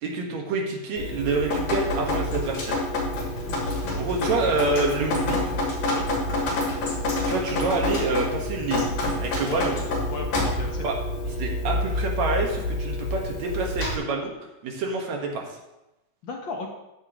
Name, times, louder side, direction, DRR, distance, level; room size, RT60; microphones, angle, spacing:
voice 1, 0.0-2.8 3.9-5.4 7.3-8.9 9.2-9.7 10.8-10.9 11.4-14.3 14.6-15.4, right 3 dB, 60° right, 1 dB, 2.7 m, -27 dB
Drip, 1.0-14.0, left 1 dB, 85° left, 4.4 m, -28 dB
sound 1, 1.8-11.8, left 2 dB, 5° left, 4.3 m, -41 dB
voice 2, 3.4-4.1 5.9-6.1 9.4-9.7 10.1-10.9 16.2-16.7, left 4 dB, 65° left, 2 dB, 1.2 m, -35 dB
13.5 x 10.0 x 3.1 m, 0.94 s
omnidirectional pair, 3.7 m